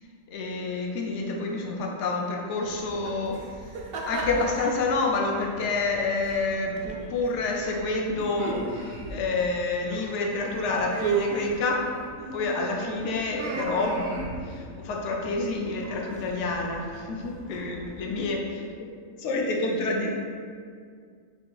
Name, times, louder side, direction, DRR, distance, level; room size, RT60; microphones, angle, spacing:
voice 1, 0.3-3.4 4.0-11.9 12.3-18.5 19.2-20.1, left 3 dB, 65° left, 0 dB, 0.9 m, -28 dB
sound 1, 2.6-18.3, right 3 dB, 60° right, 0.6 m, -36 dB
6.8 x 2.8 x 2.3 m, 2.1 s
omnidirectional pair, 1.4 m